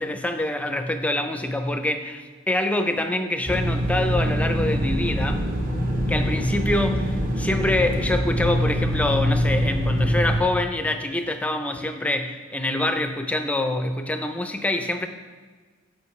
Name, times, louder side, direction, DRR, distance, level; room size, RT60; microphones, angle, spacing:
voice 1, 0.0-5.5 6.1-15.1, left 1 dB, 5° left, 7 dB, 0.4 m, -25 dB
sound 1, 3.5-10.4, equal, 40° right, 0.9 m, -24 dB
14.0 x 5.1 x 3.2 m, 1.5 s
head